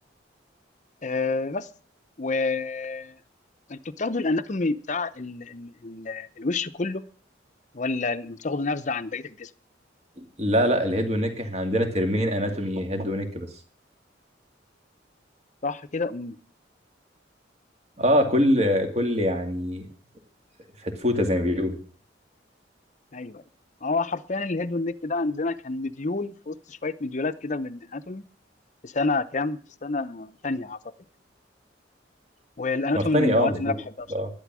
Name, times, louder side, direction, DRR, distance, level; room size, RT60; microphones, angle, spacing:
voice 1, 1.0-1.7 2.2-3.2 3.7-7.0 7.7-9.5 15.6-16.4 23.1-23.4 23.8-28.2 28.8-30.8 32.6-34.1, left 3 dB, 40° left, 12 dB, 0.7 m, -28 dB
voice 2, 10.2-13.5 18.0-19.9 20.8-21.8 32.9-33.7 34.1-34.3, equal, 35° right, 5 dB, 2.4 m, -24 dB
12.0 x 11.5 x 6.2 m, 0.44 s
head